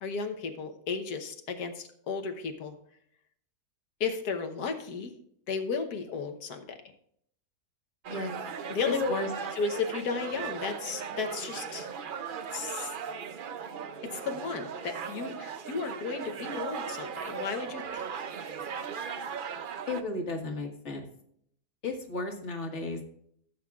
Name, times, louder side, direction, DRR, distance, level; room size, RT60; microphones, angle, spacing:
voice 1, 0.0-2.7 4.0-5.1 5.5-6.8 8.7-9.1 9.6-11.9 12.5-12.9 14.0-18.0, left 5 dB, 75° left, 5 dB, 1.5 m, -34 dB
sound 1, 8.0-20.0, right 7 dB, 80° right, 0.4 m, -38 dB
voice 2, 8.8-9.3 19.9-21.1 21.8-23.1, left 3 dB, 45° left, 3 dB, 1.8 m, -34 dB
15.5 x 8.2 x 2.4 m, 0.67 s
omnidirectional pair, 1.7 m